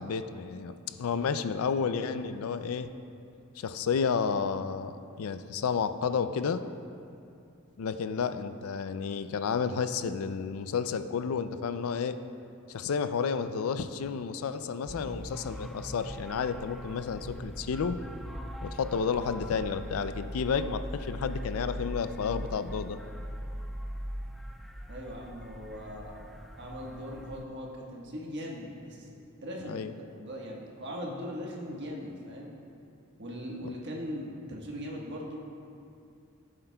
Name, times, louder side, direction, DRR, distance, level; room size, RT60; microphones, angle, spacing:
voice 1, 0.0-2.9 3.6-6.6 7.8-12.2 12.7-18.0 18.6-23.0 29.7-29.9, left 6 dB, 85° left, 11 dB, 0.4 m, -31 dB
sound 1, 14.9-27.4, equal, ahead, 0.3 m, -40 dB
voice 2, 24.9-26.3 26.5-29.1 29.4-32.5 33.2-35.4, equal, 55° right, -2 dB, 1.4 m, -40 dB
14.5 x 7.6 x 2.3 m, 2.6 s
head